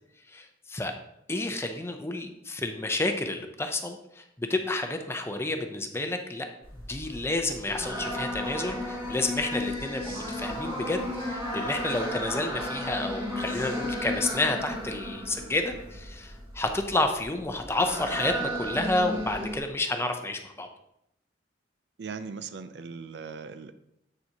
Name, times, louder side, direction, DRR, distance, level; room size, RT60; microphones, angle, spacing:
voice 1, 0.3-0.9 1.3-6.5 6.9-20.7, left 2 dB, 15° left, 5 dB, 0.6 m, -30 dB
sound 1, 6.6-19.6, equal, 30° right, 2.0 m, -34 dB
voice 2, 22.0-23.7, right 5 dB, 65° right, 11 dB, 0.4 m, -39 dB
7.9 x 7.0 x 2.9 m, 0.81 s
head